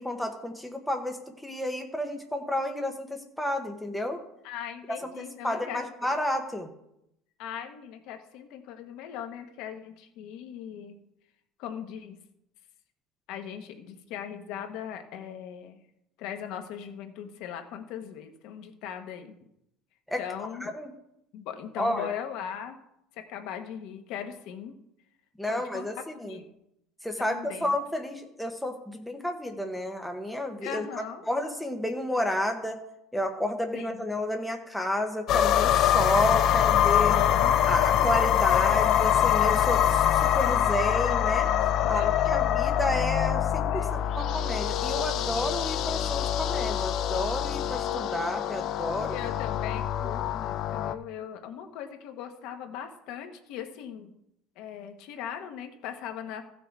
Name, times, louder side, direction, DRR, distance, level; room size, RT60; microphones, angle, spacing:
voice 1, 0.0-4.2 5.4-6.7 20.1-20.2 20.6-20.9 21.8-22.1 25.4-26.4 27.0-30.9 31.3-32.8 33.1-37.1 37.7-40.0 40.3-41.5 41.9-49.2, left 1 dB, ahead, 3 dB, 0.9 m, -31 dB
voice 2, 4.4-6.1 7.4-11.0 11.6-12.2 13.3-15.8 16.2-19.4 20.2-20.7 21.3-22.7 23.2-24.7 25.5-26.4 27.2-27.7 30.6-31.2 33.7-34.0 37.1-38.1 38.7-39.0 41.8-42.3 43.7-44.0 49.1-54.1 54.6-56.5, left 9 dB, 55° left, 6 dB, 1.1 m, -39 dB
sound 1, 35.3-50.9, left 10 dB, 40° left, 0.4 m, -24 dB
14.5 x 6.2 x 4.6 m, 0.81 s
cardioid pair, 175°, 0 cm